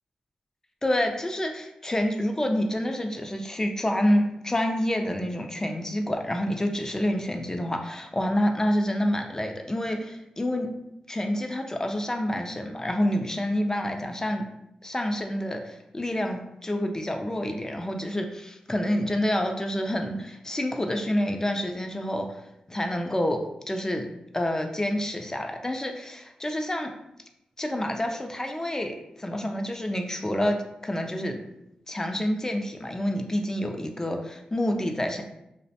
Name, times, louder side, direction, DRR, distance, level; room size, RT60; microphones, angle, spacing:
voice 1, 0.8-10.7 11.1-14.4 14.8-22.4 22.7-24.1 24.3-26.9 27.6-30.6 30.8-31.4 31.9-35.2, left 1 dB, 20° left, 4 dB, 0.4 m, -28 dB
2.4 x 2.1 x 2.7 m, 0.84 s
cardioid pair, 45°, 2 cm